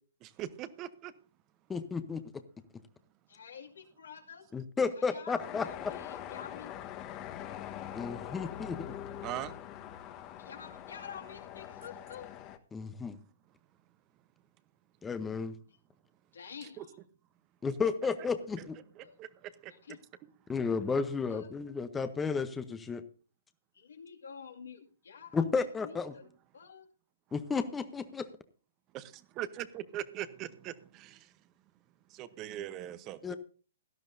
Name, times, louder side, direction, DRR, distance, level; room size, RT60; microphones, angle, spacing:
voice 1, 0.2-1.1 9.2-9.6 16.8-16.9 19.0-20.0 28.9-31.3 32.1-33.3, right 12 dB, 30° right, 0.9 m, -41 dB
voice 2, 1.7-2.2 4.5-5.9 7.9-8.8 12.7-13.2 15.0-15.5 17.6-18.8 20.5-23.0 25.3-26.1 27.3-28.3 33.2-33.3, left 5 dB, 10° left, 0.9 m, -33 dB
voice 3, 3.3-4.4 5.0-6.7 10.4-12.4 16.3-17.0 19.0-19.2 19.7-20.0 21.3-21.5 23.7-26.3 26.5-26.9, left 7 dB, 75° left, 2.3 m, -49 dB
sound 1, 5.4-12.6, left 11 dB, 30° left, 1.2 m, -43 dB
17.0 x 12.5 x 2.7 m
hypercardioid pair, 130°, 0 cm